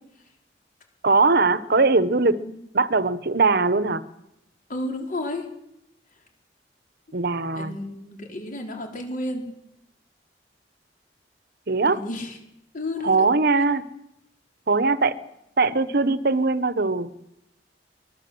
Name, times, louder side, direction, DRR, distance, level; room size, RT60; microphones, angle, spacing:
voice 1, 1.0-2.4 2.7-4.0 7.1-7.7 11.7-12.0 13.0-13.8 14.7-15.1 15.6-17.1, right 3 dB, 60° right, 15 dB, 1.1 m, -20 dB
voice 2, 4.7-5.5 7.5-9.5 11.8-12.4 12.7-13.3, left 1 dB, 50° left, 3 dB, 4.7 m, -32 dB
24.5 x 19.5 x 7.9 m, 0.83 s
head